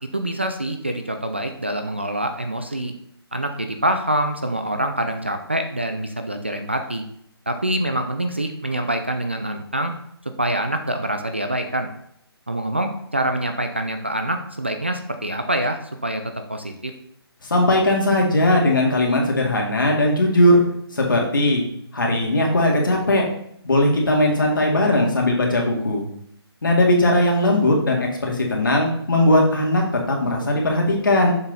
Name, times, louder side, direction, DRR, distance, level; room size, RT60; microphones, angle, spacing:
voice 1, 0.1-3.0 3.3-7.0 7.5-9.9 10.4-11.9 12.5-16.2 16.5-16.9, right 1 dB, 25° right, 6 dB, 0.4 m, -25 dB
voice 2, 17.5-20.6 20.9-21.6 21.9-23.2 23.6-26.0 26.6-31.3, left 1 dB, 50° left, -1 dB, 2.2 m, -18 dB
7.1 x 5.9 x 4.0 m, 0.71 s
hypercardioid pair, 180°, 14 cm